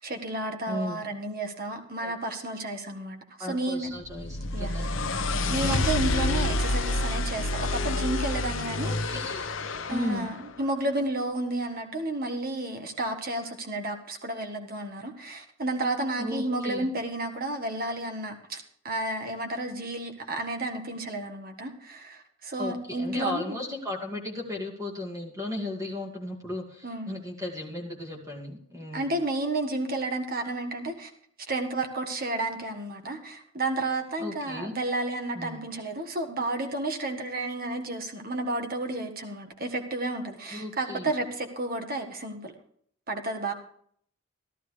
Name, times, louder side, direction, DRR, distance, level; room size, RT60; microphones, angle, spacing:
voice 1, 0.0-3.9 4.5-4.9 5.5-8.9 9.9-23.6 26.8-27.1 28.9-31.1 31.5-42.5 43.1-43.5, right 2 dB, 45° right, 5 dB, 1.5 m, -31 dB
voice 2, 0.7-1.0 2.0-2.1 3.4-5.0 8.8-9.5 9.9-10.3 16.2-16.9 22.6-29.1 34.2-34.8 35.3-35.6 40.5-41.1, left 1 dB, 15° right, -1 dB, 2.3 m, -35 dB
sound 1, 4.1-10.2, left 2 dB, 60° left, 0.8 m, -28 dB
14.5 x 12.5 x 3.3 m, 0.62 s
head